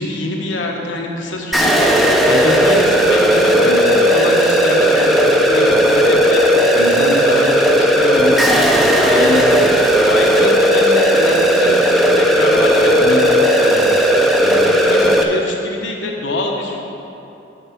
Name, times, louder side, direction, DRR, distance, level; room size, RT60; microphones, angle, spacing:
voice 1, 0.0-17.0, left 1 dB, 75° left, 0 dB, 1.2 m, -25 dB
sound 1, 1.5-15.2, equal, ahead, 0.6 m, -14 dB
8.0 x 6.6 x 5.9 m, 2.9 s
head